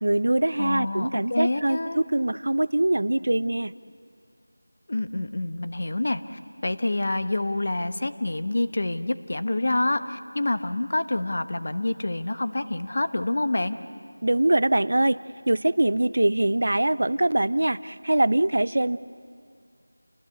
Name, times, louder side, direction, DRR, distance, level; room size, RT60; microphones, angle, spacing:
voice 1, 0.0-3.7 14.2-15.2 15.5-19.0, right 1 dB, 55° right, 17 dB, 0.6 m, -23 dB
voice 2, 0.6-2.0 4.9-13.8, left 2 dB, 45° left, 11 dB, 1.0 m, -27 dB
29.5 x 19.5 x 8.2 m, 2.2 s
figure-of-eight pair, 175°, 0 cm